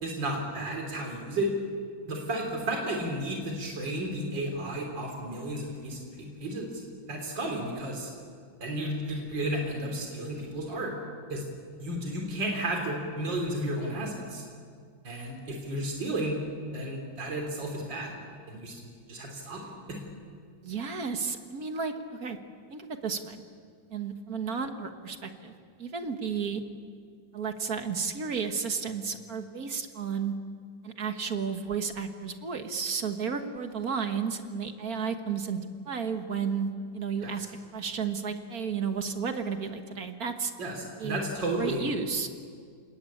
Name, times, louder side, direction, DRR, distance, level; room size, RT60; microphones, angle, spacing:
voice 1, 0.0-1.5 2.1-6.8 7.1-8.1 8.6-10.9 11.3-11.5 11.8-14.4 15.0-16.4 16.7-18.1 18.5-19.6 19.9-20.0 37.2-37.3 40.6-41.9, right 1 dB, 75° right, 1 dB, 4.0 m, -33 dB
voice 2, 20.6-22.4 22.7-23.4 23.9-25.5 25.8-26.6 27.3-30.3 30.8-35.6 35.9-37.5 37.7-40.5 41.0-41.2 41.5-42.3, right 6 dB, 50° right, 7 dB, 1.9 m, -32 dB
28.5 x 20.0 x 8.6 m, 2.1 s
omnidirectional pair, 2.0 m